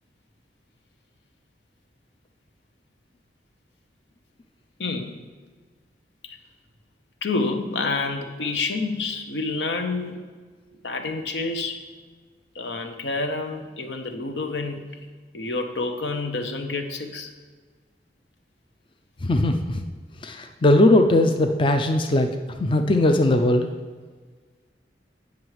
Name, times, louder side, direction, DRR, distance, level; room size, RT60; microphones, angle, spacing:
voice 1, 4.8-5.1 6.2-6.4 7.2-10.2 10.8-11.8 12.5-14.9 15.3-17.3, left 3 dB, 80° left, 5 dB, 0.9 m, -28 dB
voice 2, 19.2-19.8 20.2-22.3 22.6-23.7, left 1 dB, 30° left, 5 dB, 0.5 m, -19 dB
9.4 x 6.1 x 4.8 m, 1.5 s
head